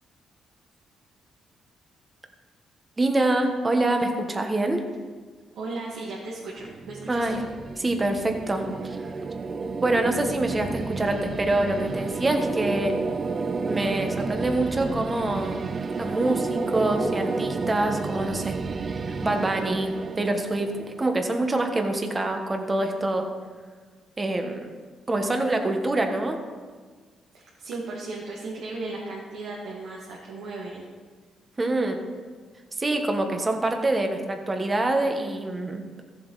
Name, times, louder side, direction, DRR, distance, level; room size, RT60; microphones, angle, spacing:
voice 1, 3.0-4.8 7.1-7.4 7.8-9.0 9.8-12.9 13.7-15.6 16.0-18.6 19.2-20.7 21.0-23.3 24.2-24.7 25.1-26.4 31.6-32.0 32.8-35.8, right 2 dB, 25° right, 4 dB, 1.4 m, -25 dB
voice 2, 5.5-7.4 27.3-30.8, right 3 dB, 80° right, -5 dB, 2.1 m, -36 dB
sound 1, 6.6-21.6, right 4 dB, 40° right, 0.5 m, -31 dB
14.5 x 7.7 x 4.1 m, 1.5 s
cardioid pair, 90°, 0 cm